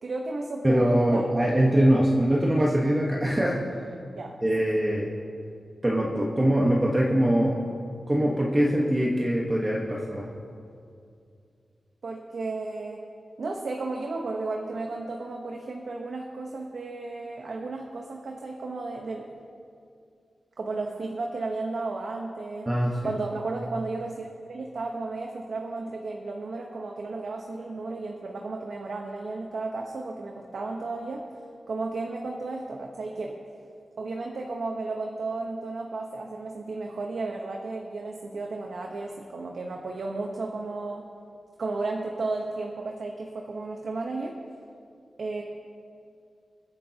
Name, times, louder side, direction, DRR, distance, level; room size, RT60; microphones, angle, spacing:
voice 1, 0.0-1.2 4.2-4.3 12.0-13.0 13.4-19.3 20.6-22.7 23.0-31.2 31.7-33.4 34.0-41.1 41.6-44.4 45.2-45.4, right 3 dB, 65° right, 1 dB, 1.1 m, -33 dB
voice 2, 0.6-3.6 4.4-5.1 5.8-7.6 8.1-10.3 22.7-23.0, right 1 dB, 20° right, -3 dB, 1.3 m, -23 dB
27.5 x 10.0 x 2.9 m, 2.4 s
wide cardioid pair, 95°, 0 cm